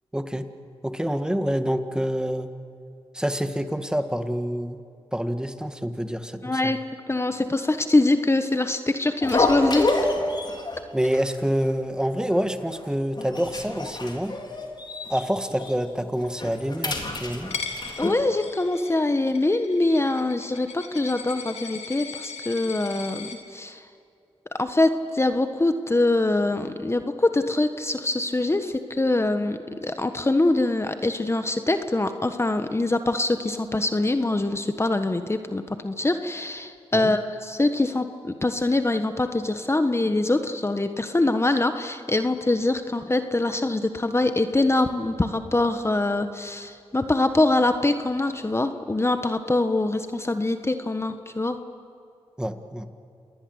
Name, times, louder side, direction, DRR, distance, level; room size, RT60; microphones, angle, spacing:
voice 1, 0.1-0.5 0.8-2.5 3.1-4.8 5.1-6.7 10.9-14.4 15.1-17.5 36.9-37.1 52.4-52.9, equal, 5° right, 8 dB, 1.8 m, -27 dB
voice 2, 6.4-9.9 18.0-23.9 24.5-51.6, left 2 dB, 25° left, 8 dB, 1.4 m, -24 dB
sound 1, 9.2-10.8 11.1-11.4 11.6-11.7 12.3-12.8 13.2-15.2 15.5-15.7 16.2-18.1, left 2 dB, 40° left, 3.9 m, -28 dB
Coin (dropping), 17.5-23.4, left 5 dB, 70° left, 3.0 m, -38 dB
28.0 x 19.5 x 8.1 m, 2.6 s
cardioid pair, 50°, 11 cm